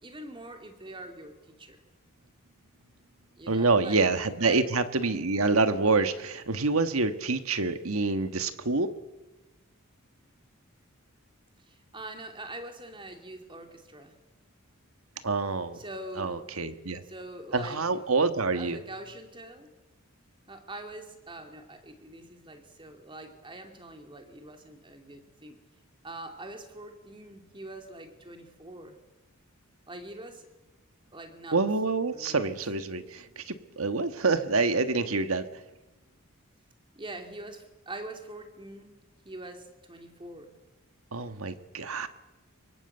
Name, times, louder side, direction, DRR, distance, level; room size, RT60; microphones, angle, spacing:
voice 1, 0.0-1.8 3.4-4.0 4.4-4.7 11.6-14.2 15.7-16.4 17.0-17.8 18.5-19.7 20.5-25.6 26.0-29.0 29.9-30.5 31.1-31.6 32.1-32.5 36.9-38.9 39.2-40.5, right 1 dB, 25° right, 5 dB, 2.8 m, -44 dB
voice 2, 3.5-9.0 15.2-15.8 16.2-17.0 17.5-18.8 31.5-35.5 41.1-42.1, right 3 dB, 85° right, 10 dB, 1.5 m, -27 dB
24.0 x 23.0 x 8.0 m, 1.1 s
head